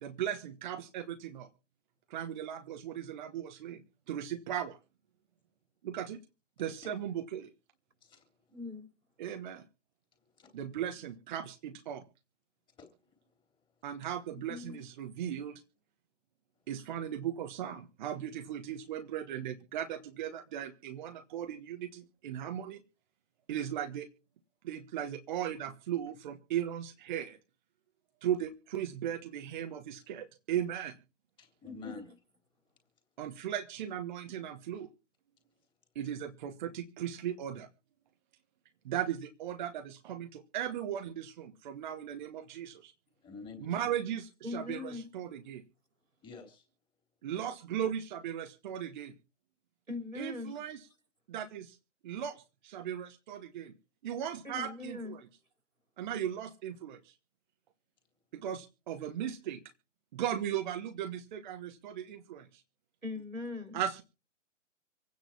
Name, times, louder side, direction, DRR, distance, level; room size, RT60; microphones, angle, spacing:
voice 1, 0.0-1.5 2.1-3.8 4.1-4.8 5.8-6.2 6.6-7.5 9.2-9.6 10.5-12.0 13.8-15.6 16.7-22.8 23.5-24.1 24.6-27.4 28.2-31.0 33.2-34.9 35.9-37.7 38.8-42.9 43.6-45.6 47.2-49.1 50.2-50.8 51.3-51.8 52.0-53.7 54.0-55.2 56.0-57.0 58.3-59.6 60.1-62.6 63.7-64.0, right 10 dB, 40° right, 6 dB, 1.3 m, -37 dB
voice 2, 8.5-8.9 14.5-14.8 31.6-32.0 44.4-45.1 49.9-50.6 54.5-55.2 63.0-63.8, left 3 dB, 90° right, 4 dB, 4.3 m, -41 dB
voice 3, 12.8-13.3 31.4-32.1 43.2-43.9 46.2-46.6, left 4 dB, 15° left, 3 dB, 3.2 m, -49 dB
26.0 x 9.5 x 2.9 m, 0.34 s
figure-of-eight pair, 130°, 38 cm